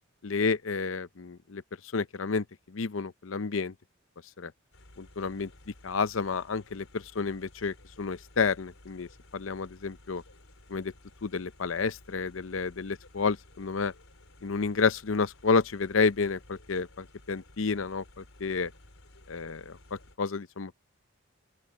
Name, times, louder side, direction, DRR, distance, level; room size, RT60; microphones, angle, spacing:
voice 1, 0.2-1.6 1.9-3.7 4.4-4.5 5.0-5.5 5.8-9.1 9.3-10.2 10.7-10.9 11.2-13.9 14.4-18.7 19.3-20.8, left 4 dB, 70° left, 0.7 m, -30 dB
sound 1, 4.7-20.2, left 1 dB, 85° left, 4.1 m, -56 dB
open air
head